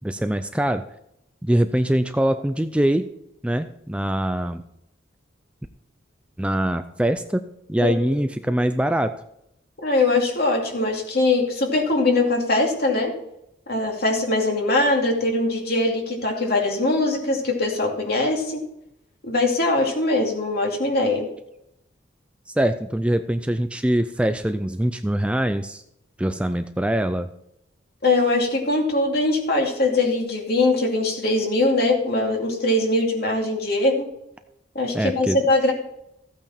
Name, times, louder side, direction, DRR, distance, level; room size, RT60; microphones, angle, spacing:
voice 1, 0.0-0.8 1.4-3.1 3.4-4.6 6.4-7.4 7.7-9.1 22.5-25.8 26.2-27.3 34.9-35.4, right 1 dB, 5° right, 9 dB, 0.4 m, -23 dB
voice 2, 9.8-13.1 13.7-18.6 19.2-21.3 28.0-34.1 34.7-35.7, left 2 dB, 55° left, 1 dB, 2.6 m, -21 dB
14.5 x 8.8 x 4.4 m, 0.80 s
head